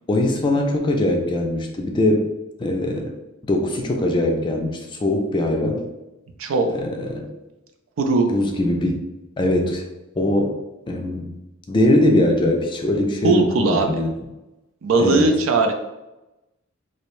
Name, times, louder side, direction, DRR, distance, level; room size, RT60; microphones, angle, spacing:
voice 1, 0.1-2.3 2.6-3.1 3.4-5.8 6.7-7.3 8.3-8.9 9.4-9.8 10.2-10.6 10.9-11.3 11.7-14.1 15.0-15.3, left 1 dB, 25° left, 2 dB, 0.3 m, -21 dB
voice 2, 8.0-8.3 13.2-13.9 14.8-15.7, right 3 dB, 80° right, 4 dB, 0.4 m, -18 dB
2.6 x 2.0 x 2.9 m, 0.99 s
head